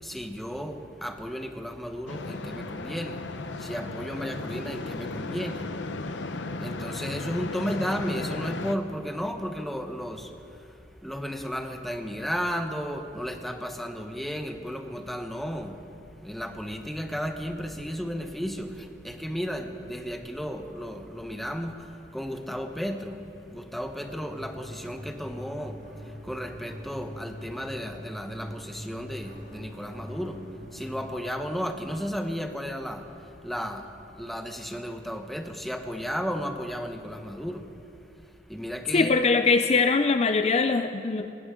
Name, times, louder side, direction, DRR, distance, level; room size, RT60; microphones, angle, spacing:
voice 1, 0.0-3.2 3.6-5.7 6.6-10.3 11.0-15.8 16.2-25.8 26.1-30.4 30.7-33.1 33.4-33.9 34.1-37.7 38.5-39.2, equal, ahead, 5 dB, 0.9 m, -34 dB
sound 1, 2.1-8.8, left 3 dB, 80° left, 0.8 m, -35 dB
sound 2, 24.1-30.9, equal, 50° right, 4.7 m, -43 dB
voice 2, 38.9-41.3, left 4 dB, 35° left, 8 dB, 0.4 m, -22 dB
19.5 x 18.5 x 3.7 m, 2.8 s
head